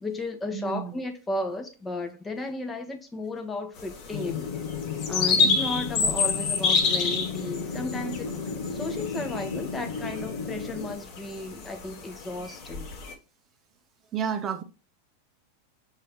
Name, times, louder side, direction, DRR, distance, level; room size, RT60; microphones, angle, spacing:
voice 1, 0.0-4.5 5.1-8.3 8.7-12.9, left 2 dB, 15° left, 0.9 m, -34 dB
voice 2, 0.5-0.9 5.4-5.6 14.1-14.6, right 8 dB, 30° right, 0.6 m, -30 dB
sound 1, 3.8-13.1, left 4 dB, 50° left, 1.0 m, -29 dB
sound 2, 4.1-10.9, left 5 dB, 80° left, 0.7 m, -34 dB
5.4 x 2.7 x 3.4 m
hypercardioid pair, 110°, 0 cm